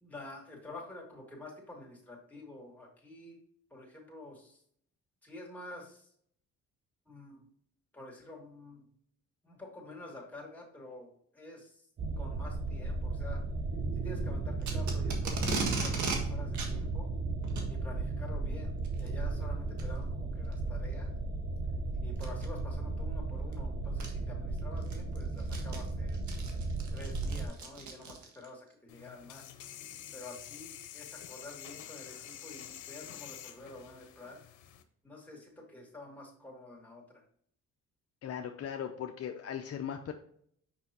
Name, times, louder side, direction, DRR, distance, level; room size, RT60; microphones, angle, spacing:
voice 1, 0.0-3.4 3.7-4.6 5.2-6.1 7.1-7.4 7.9-8.8 9.4-11.9 12.2-13.4 13.9-17.1 17.7-21.1 22.0-26.2 26.9-29.5 30.1-34.4 35.0-37.2, left 2 dB, 5° left, -2 dB, 2.6 m, -49 dB
sound 1, 12.0-27.5, right 3 dB, 35° right, 1.0 m, -35 dB
Packing tape duct tape, 14.6-16.2 16.5-16.7 17.4-17.7 18.8-19.1 19.8-19.9 20.5-20.6 22.2-22.5 23.5-23.6 24.0-24.1 24.6-28.5, right 4 dB, 70° right, 1.6 m, -37 dB
sound 2, 28.9-34.8, left 10 dB, 85° left, 0.8 m, -48 dB
voice 2, 38.2-40.1, left 8 dB, 55° left, 5 dB, 0.6 m, -38 dB
6.0 x 5.4 x 2.9 m, 0.64 s
cardioid pair, 90°, 30 cm